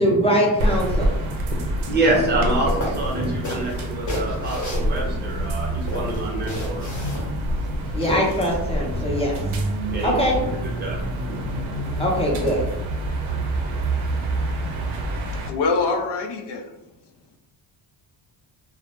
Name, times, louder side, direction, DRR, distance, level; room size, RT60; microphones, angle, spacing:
voice 1, 0.0-1.1 7.9-9.4 10.0-10.4 12.0-12.6, equal, 15° left, -2 dB, 0.6 m, -22 dB
sound 1, 0.6-15.5, right 1 dB, 90° right, 0.6 m, -27 dB
voice 2, 1.2-7.0 9.9-11.4, right 2 dB, 20° right, -3 dB, 0.7 m, -27 dB
sound 2, 2.4-2.6 2.8-5.4 5.8-8.4, left 1 dB, 40° left, 0.9 m, -32 dB
voice 3, 13.5-16.8, left 4 dB, 60° left, 5 dB, 0.5 m, -28 dB
2.1 x 2.0 x 2.9 m, 0.93 s
cardioid pair, 100°, 47 cm